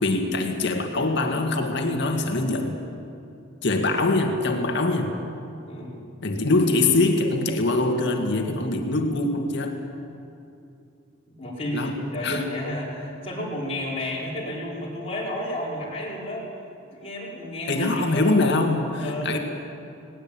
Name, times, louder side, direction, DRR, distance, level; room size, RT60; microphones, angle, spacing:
voice 1, 0.0-2.8 3.6-5.2 6.2-9.8 11.7-11.9 12.2-12.4 17.7-19.4, left 2 dB, 60° left, 3 dB, 2.0 m, -23 dB
voice 2, 5.7-6.0 11.4-16.4 16.9-17.9 18.1-18.6 19.0-19.4, left 1 dB, 30° left, -5 dB, 5.2 m, -31 dB
19.5 x 19.0 x 8.8 m, 2.6 s
head